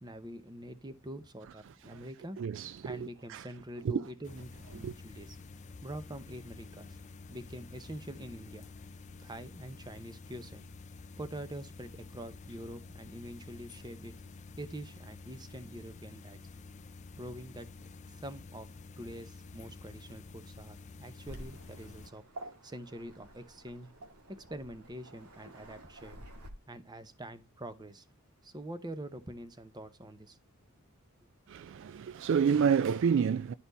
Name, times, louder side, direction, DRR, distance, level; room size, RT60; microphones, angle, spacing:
voice 1, 0.0-2.4 2.8-5.4 5.8-7.0 7.3-8.7 9.2-14.1 14.6-16.4 17.2-17.7 18.2-18.7 19.0-22.2 22.6-23.9 24.3-26.3 26.7-28.1 28.4-30.4, right 1 dB, 20° right, 0.8 m, -45 dB
voice 2, 2.4-3.4 3.8-4.0 4.8-4.9 31.5-33.5, right 7 dB, 55° right, 0.3 m, -29 dB
sound 1, 4.2-22.1, left 3 dB, 30° left, 0.4 m, -50 dB
Waves surf, 21.3-26.5, right 1 dB, 85° right, 1.9 m, -50 dB
11.0 x 4.3 x 4.0 m
head